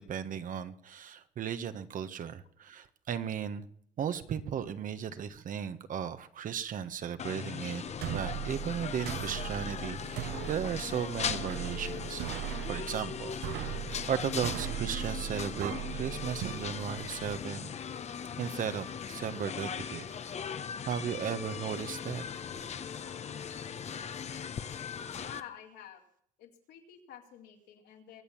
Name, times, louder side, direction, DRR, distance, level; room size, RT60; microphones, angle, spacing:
voice 1, 0.0-3.6 4.0-7.8 8.1-12.2 12.7-13.4 13.7-13.8 14.1-17.7 18.4-20.2 20.9-22.2, right 8 dB, 50° right, 11 dB, 1.5 m, -36 dB
sound 1, 7.2-25.4, left 7 dB, 40° left, 1.1 m, -39 dB
sound 2, 7.9-17.4, right 12 dB, 70° right, 0.6 m, -39 dB
voice 2, 25.2-26.0 26.4-28.2, left 10 dB, 80° left, 1 dB, 4.5 m, -49 dB
23.5 x 8.3 x 7.4 m, 0.65 s
cardioid pair, 110°, 17 cm